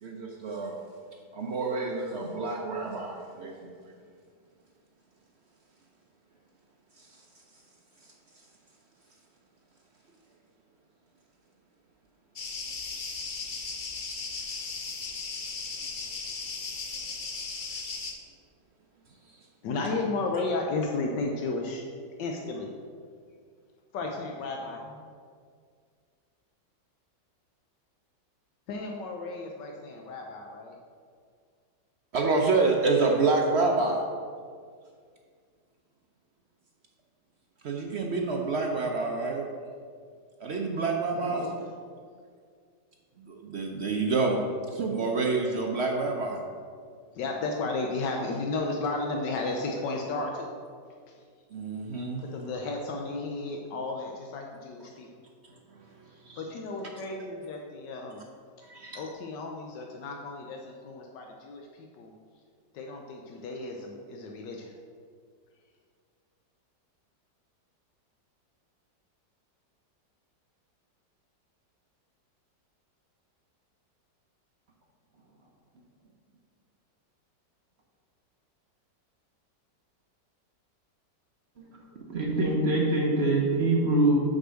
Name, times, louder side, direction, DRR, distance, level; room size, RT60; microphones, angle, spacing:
voice 1, 0.0-0.8 1.3-3.7 32.1-34.0 37.6-39.4 40.4-41.5 43.3-44.4 44.7-46.4 51.5-52.2 56.2-56.4 58.7-59.0, right 3 dB, 65° right, 1 dB, 0.6 m, -28 dB
sound 1, 12.4-18.1, left 4 dB, 60° left, 0.5 m, -36 dB
voice 2, 19.6-21.8 22.2-22.7 23.9-25.1 28.7-30.8 41.1-41.7 47.1-50.5 51.1-51.2 52.2-55.1 56.4-58.2 58.9-62.1 62.7-64.7, left 3 dB, 80° left, 1 dB, 1.4 m, -33 dB
voice 3, 82.1-84.2, right 2 dB, 45° right, -1 dB, 1.0 m, -24 dB
6.2 x 5.3 x 6.3 m, 2.1 s
omnidirectional pair, 1.9 m